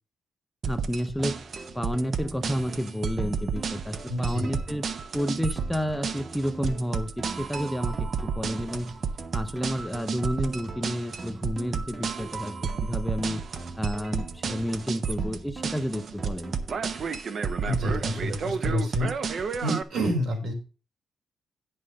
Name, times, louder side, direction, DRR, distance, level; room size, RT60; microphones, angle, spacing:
sound 1, 0.6-19.8, right 5 dB, 45° right, 0.7 m, -31 dB
voice 1, 0.7-1.4 1.7-4.9 5.1-9.0 9.3-13.4 13.8-16.5, equal, 5° left, 9 dB, 0.6 m, -31 dB
sound 2, 1.2-17.2, right 3 dB, 30° right, 1.3 m, -43 dB
voice 2, 4.1-4.5 17.6-19.1 19.6-20.5, equal, 70° right, 3 dB, 3.6 m, -28 dB
9.5 x 5.5 x 6.3 m, 0.35 s
cardioid pair, 145°, 0 cm